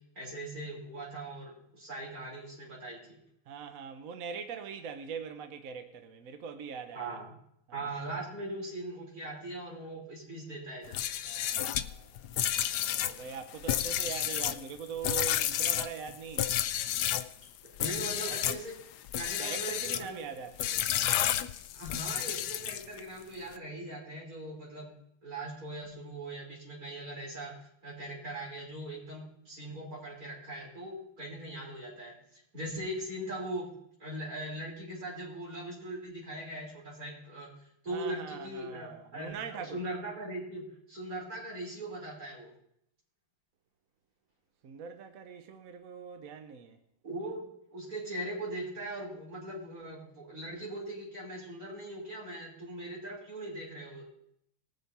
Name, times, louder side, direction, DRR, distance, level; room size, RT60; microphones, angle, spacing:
voice 1, 0.2-3.2 6.9-7.2 7.7-11.0 17.8-18.8 19.1-20.2 21.7-24.9 25.2-27.5 27.8-33.7 34.0-37.5 37.8-42.5 47.0-47.5 47.7-54.0, right 1 dB, 40° right, 5.5 m, -40 dB
voice 2, 3.5-7.2 7.7-8.2 11.2-12.3 13.0-16.6 18.2-18.4 19.4-20.8 37.9-39.8 44.6-46.8, right 7 dB, 60° right, 0.9 m, -42 dB
sound 1, 10.8-17.3 17.8-18.6 19.1-20.1 20.6-23.0, left 11 dB, 80° left, 0.9 m, -31 dB
20.0 x 6.9 x 4.2 m
omnidirectional pair, 2.3 m